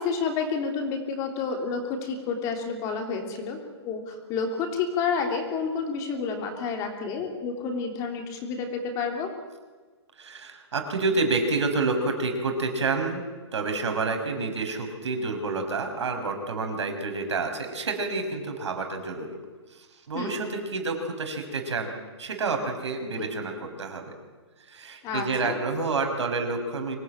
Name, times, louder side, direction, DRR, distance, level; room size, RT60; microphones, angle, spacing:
voice 1, 0.0-3.6 3.8-9.3 20.1-20.3 25.0-25.6, left 5 dB, 20° left, 3 dB, 3.3 m, -30 dB
voice 2, 10.2-13.2 13.5-19.3 19.7-21.9 22.2-24.1 24.7-27.0, right 3 dB, 80° right, 5 dB, 5.8 m, -29 dB
25.0 x 18.0 x 9.1 m, 1.4 s
hypercardioid pair, 165°, 15 cm